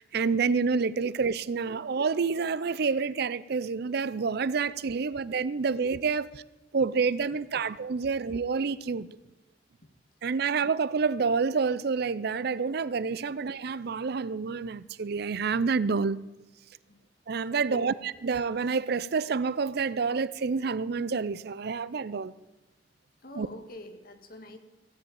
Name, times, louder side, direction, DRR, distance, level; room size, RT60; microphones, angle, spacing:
voice 1, 0.0-6.4 6.7-9.1 10.2-16.2 17.3-22.3 23.3-23.5, right 5 dB, 60° right, 0.5 m, -28 dB
voice 2, 23.2-24.6, left 1 dB, 55° left, 1.8 m, -44 dB
16.5 x 8.0 x 8.8 m
head